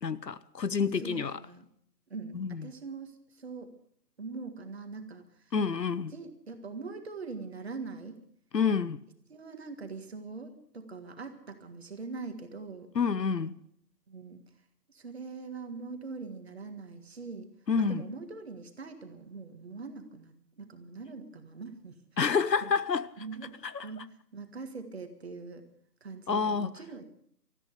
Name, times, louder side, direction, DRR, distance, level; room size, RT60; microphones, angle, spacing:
voice 1, 0.0-1.4 2.3-2.7 5.5-6.1 8.5-9.0 12.9-13.6 17.7-18.0 22.2-23.1 23.6-23.9 26.3-26.7, left 6 dB, 80° left, 1.1 m, -28 dB
voice 2, 0.9-1.7 2.1-3.8 4.2-5.5 6.1-8.2 9.3-12.9 14.1-14.4 14.9-22.0 22.6-22.7 23.2-25.7 26.0-27.0, right 4 dB, 40° right, 1.8 m, -42 dB
20.0 x 13.5 x 5.1 m
figure-of-eight pair, 165°, 49 cm